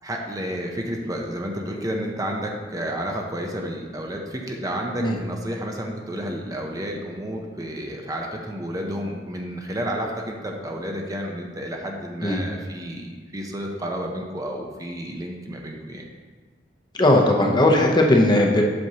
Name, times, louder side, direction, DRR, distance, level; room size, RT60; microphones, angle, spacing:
voice 1, 0.0-16.1, equal, 20° right, 1 dB, 0.6 m, -31 dB
voice 2, 17.0-18.6, left 1 dB, 25° left, 0 dB, 0.7 m, -17 dB
7.6 x 6.8 x 2.8 m, 1.5 s
head